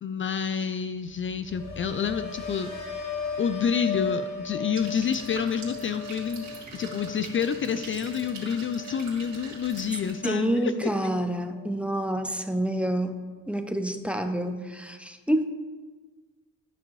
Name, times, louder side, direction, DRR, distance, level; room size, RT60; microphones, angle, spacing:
voice 1, 0.0-2.7 3.4-10.7, left 7 dB, 40° left, 10 dB, 0.4 m, -28 dB
sound 1, 1.1-11.2 11.5-12.0, left 4 dB, 70° left, 2.2 m, -37 dB
sound 2, 4.8-10.1, right 4 dB, 65° right, 2.4 m, -43 dB
voice 2, 10.2-13.2 13.5-15.5, right 1 dB, 5° right, 6 dB, 0.6 m, -28 dB
12.0 x 6.0 x 3.2 m, 1.4 s
cardioid pair, 105°, 31 cm